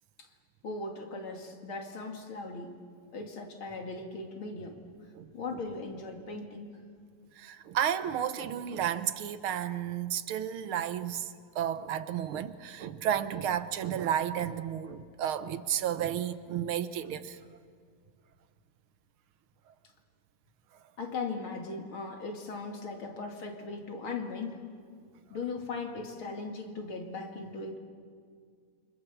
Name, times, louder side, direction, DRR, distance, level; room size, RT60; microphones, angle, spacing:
voice 1, 0.6-2.8 3.1-4.8 5.3-6.7 21.0-24.6 25.3-27.8, left 3 dB, 65° left, 3.1 m, -38 dB
voice 2, 7.4-17.4, right 9 dB, 75° right, 1.7 m, -32 dB
28.5 x 25.0 x 7.1 m
omnidirectional pair, 2.4 m